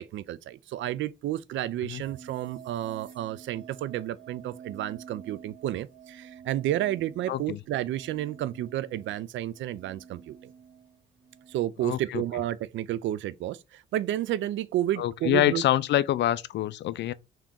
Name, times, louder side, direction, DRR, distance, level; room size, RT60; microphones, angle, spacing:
voice 1, 0.0-10.5 11.5-15.6, right 13 dB, 75° right, 0.4 m, -31 dB
sound 1, 2.0-11.6, right 7 dB, 90° right, 1.8 m, -49 dB
voice 2, 7.3-7.6 11.8-12.2 15.0-17.1, left 13 dB, 65° left, 0.4 m, -26 dB
3.6 x 2.9 x 3.6 m
cardioid pair, 90°, 20 cm